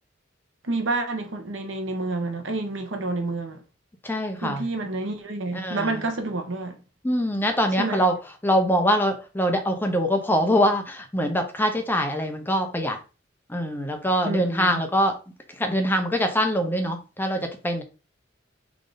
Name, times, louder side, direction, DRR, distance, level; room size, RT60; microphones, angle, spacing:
voice 1, 0.6-3.6 4.4-6.8 7.8-8.0 14.2-14.8, right 2 dB, 80° right, 1.0 m, -29 dB
voice 2, 4.0-4.6 5.5-6.0 7.0-8.1 8.4-13.0 13.5-15.1 15.6-17.8, equal, 10° left, 0.7 m, -23 dB
3.8 x 3.5 x 3.9 m
head